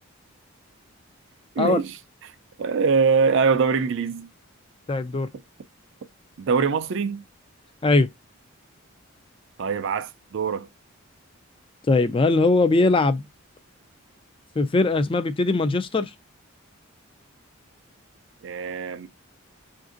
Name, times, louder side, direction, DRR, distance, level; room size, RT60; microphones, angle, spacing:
voice 1, 1.6-2.3 2.6-4.3 6.4-7.2 9.6-10.7 18.4-19.1, right 5 dB, 60° right, 0.4 m, -23 dB
voice 2, 4.9-5.3 7.8-8.1 11.9-13.3 14.6-16.1, left 3 dB, 25° left, 0.3 m, -20 dB
6.8 x 2.6 x 2.5 m
head